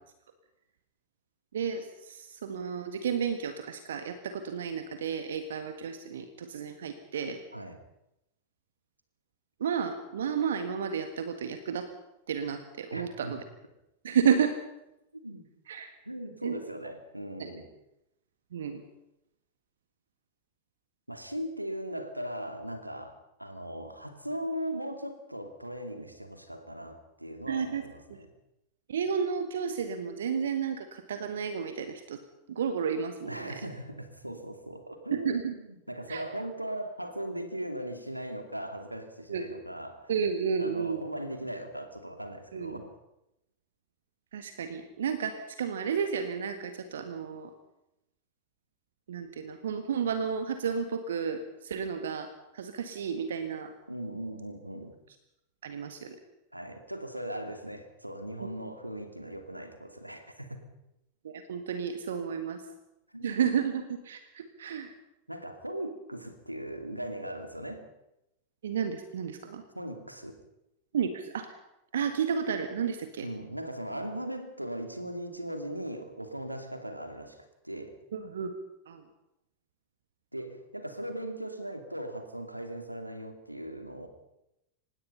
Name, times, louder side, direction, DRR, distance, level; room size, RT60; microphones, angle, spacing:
voice 1, 1.5-7.4 9.6-11.9 12.3-13.4 14.0-14.5 15.7-15.9 16.4-16.6 17.4-17.5 18.5-18.8 27.5-27.8 28.9-32.2 32.5-33.7 35.1-35.5 36.1-36.2 39.3-39.5 40.1-41.0 42.5-42.8 44.3-47.5 49.1-53.7 55.6-56.2 58.4-58.5 61.2-62.6 63.2-64.9 68.6-69.6 70.9-71.5 71.9-73.3 78.1-78.5 78.8-79.0, right 7 dB, 65° right, 8 dB, 1.6 m, -32 dB
voice 2, 12.9-13.3 15.2-15.4 16.1-17.6 21.1-28.3 33.3-40.1 40.6-42.9 53.9-54.9 56.5-60.6 63.1-63.4 65.3-67.8 69.7-70.4 73.2-77.4 77.6-78.0 80.3-84.1, right 1 dB, 90° right, 7 dB, 2.6 m, -39 dB
25.0 x 20.0 x 5.7 m, 0.89 s
figure-of-eight pair, 90°, 0 cm